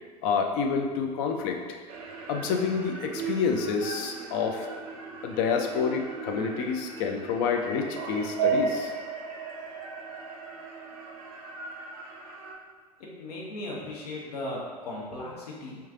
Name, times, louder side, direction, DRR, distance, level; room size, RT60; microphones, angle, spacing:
voice 1, 0.2-1.8 2.3-4.7 5.2-8.9, left 6 dB, 45° left, 3 dB, 0.5 m, -28 dB
sound 1, 1.9-12.5, right 5 dB, 55° right, 0.5 m, -35 dB
voice 2, 13.0-15.8, left 1 dB, 65° left, -3 dB, 0.9 m, -37 dB
3.1 x 2.3 x 3.6 m, 1.5 s
figure-of-eight pair, 80°, 21 cm